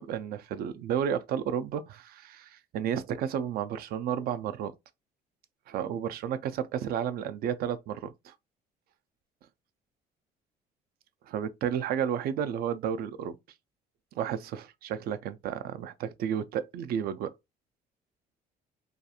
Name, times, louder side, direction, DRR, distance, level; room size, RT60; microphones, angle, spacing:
voice 1, 0.0-4.7 5.7-8.3 11.3-13.4 14.2-17.3, right 8 dB, 65° right, 0.4 m, -32 dB
2.4 x 2.4 x 2.7 m
cardioid pair, 110°, 17 cm